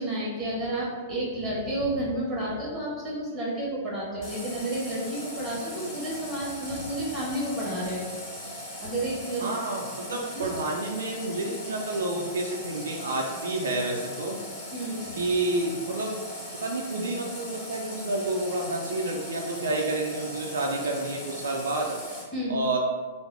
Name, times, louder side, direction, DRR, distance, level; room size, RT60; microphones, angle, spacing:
voice 1, 0.0-8.1 8.8-9.5 9.9-10.5 14.7-15.1 22.3-22.6, right 1 dB, 20° right, -5 dB, 1.4 m, -31 dB
Water tap faucet, 4.2-22.2, left 1 dB, 30° left, 1.3 m, -39 dB
voice 2, 9.4-14.4 15.2-16.1 16.6-22.0 22.5-22.8, right 2 dB, 75° right, 0 dB, 0.4 m, -29 dB
3.4 x 2.0 x 3.3 m, 1.4 s
hypercardioid pair, 115°, 0 cm